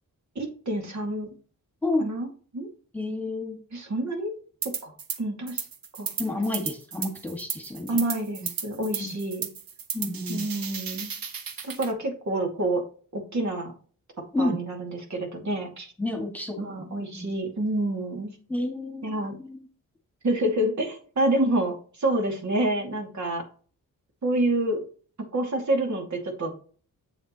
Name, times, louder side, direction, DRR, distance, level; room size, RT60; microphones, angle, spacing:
voice 1, 0.4-1.3 2.0-2.3 2.5-2.7 3.7-4.3 4.6-4.9 5.2-5.6 6.0-6.1 7.9-9.5 10.3-11.1 11.6-12.8 13.1-13.7 14.4-15.9 16.6-18.3 19.0-19.3 20.2-23.4 24.2-24.8 25.3-26.5, right 1 dB, 55° right, 1 dB, 2.5 m, -28 dB
voice 2, 2.9-3.6 6.2-8.0 8.4-8.5 9.0-9.1 9.9-10.5 14.3-14.6 16.0-17.3 18.5-19.6, left 2 dB, 5° left, 2 dB, 1.9 m, -30 dB
sound 1, 4.6-5.2 5.5-11.9, right 7 dB, 85° right, 1.3 m, -34 dB
8.1 x 7.1 x 3.1 m, 0.41 s
wide cardioid pair, 105°, 34 cm